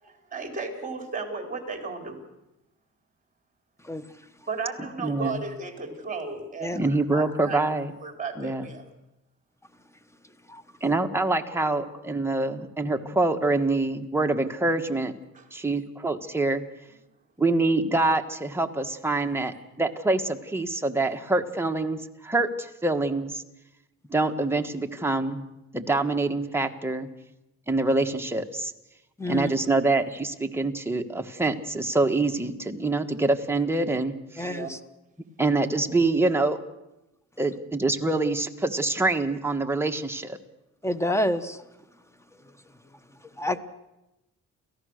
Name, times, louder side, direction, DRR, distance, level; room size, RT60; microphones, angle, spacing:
voice 1, 0.0-2.2 4.5-7.7 8.0-8.8 15.3-15.5 29.4-29.5 34.4-34.7, right 4 dB, 25° right, 3 dB, 4.3 m, -35 dB
voice 2, 5.0-5.4 6.7-7.9 8.4-8.7 10.8-15.1 15.5-16.6 17.4-23.4 24.1-25.4 25.7-27.1 27.7-28.7 29.3-34.5 35.4-36.6 37.4-40.4, right 2 dB, 5° right, 4 dB, 1.4 m, -25 dB
voice 3, 29.2-29.5 34.4-34.8 40.8-41.6 43.4-43.6, left 1 dB, 10° left, 12 dB, 1.1 m, -28 dB
29.5 x 14.5 x 6.5 m, 0.94 s
cardioid pair, 120°, 32 cm